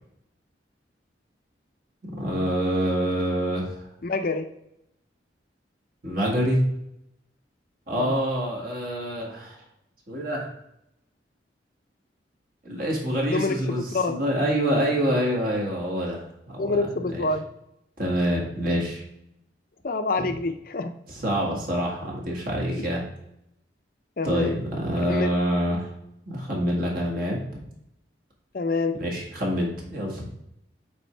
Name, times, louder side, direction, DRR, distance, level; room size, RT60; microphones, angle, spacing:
voice 1, 2.0-3.8 6.0-6.6 7.9-9.6 10.1-10.5 12.6-16.9 17.1-17.3 18.0-19.0 20.2-20.3 21.1-23.0 24.2-25.9 26.3-27.6 28.9-30.2, equal, 50° right, -2 dB, 1.9 m, -26 dB
voice 2, 4.0-4.4 7.9-8.1 13.3-13.6 13.9-14.1 16.6-17.4 19.8-20.9 24.2-24.6 25.1-25.3 28.5-28.9, left 3 dB, 50° left, 7 dB, 0.5 m, -26 dB
8.5 x 3.6 x 3.3 m, 0.80 s
head